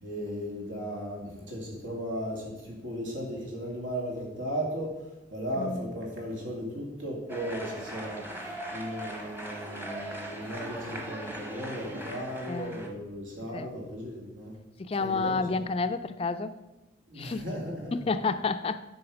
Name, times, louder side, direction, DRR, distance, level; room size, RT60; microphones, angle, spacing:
voice 1, 0.0-14.6 15.0-15.6 17.1-18.0, equal, 80° right, -1 dB, 2.5 m, -36 dB
voice 2, 5.6-5.9 12.5-12.8 13.5-13.7 14.8-16.5 17.2-17.4 17.9-18.8, left 4 dB, 30° left, 11 dB, 0.3 m, -30 dB
sound 1, 7.3-12.9, right 1 dB, 10° right, 0.9 m, -39 dB
9.3 x 5.6 x 4.8 m, 1.0 s
head